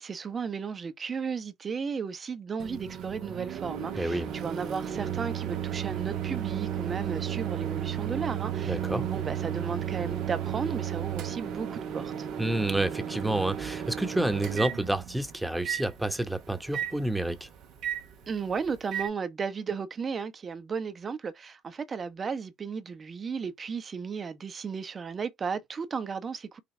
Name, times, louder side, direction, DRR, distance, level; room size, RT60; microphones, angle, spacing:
voice 1, 0.0-12.3 18.3-26.6, right 5 dB, 40° right, 0.9 m, -34 dB
Microwave oven, 2.6-19.1, right 10 dB, 65° right, 0.8 m, -34 dB
voice 2, 4.0-4.3 8.7-9.0 12.4-17.5, right 1 dB, 5° right, 1.1 m, -29 dB
5.1 x 2.3 x 3.2 m
hypercardioid pair, 55°, 0 cm